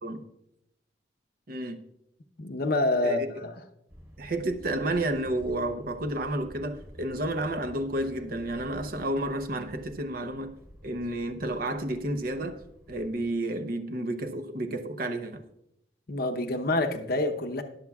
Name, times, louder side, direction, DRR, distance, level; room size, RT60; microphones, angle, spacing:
voice 1, 1.5-1.8 3.0-3.4 4.2-10.6 10.8-12.6 12.9-15.4, right 1 dB, 50° right, 0.8 m, -31 dB
voice 2, 2.4-3.5 16.1-17.6, left 2 dB, 55° left, 0.8 m, -27 dB
sound 1, 3.9-13.3, equal, 15° right, 1.4 m, -50 dB
20.5 x 7.1 x 2.4 m
head